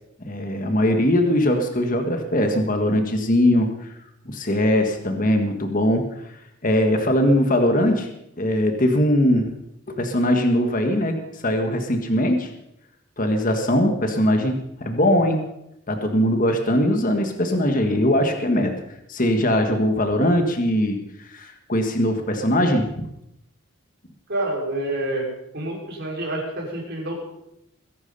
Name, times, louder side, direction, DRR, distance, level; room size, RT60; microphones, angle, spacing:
voice 1, 0.2-3.9 4.2-6.0 6.6-9.5 9.9-12.5 13.2-15.4 15.9-18.7 19.1-23.1, left 1 dB, 40° left, 5 dB, 1.6 m, -21 dB
voice 2, 24.3-25.3 25.5-27.2, right 1 dB, 50° right, -1 dB, 5.4 m, -27 dB
21.0 x 11.0 x 5.5 m, 0.83 s
head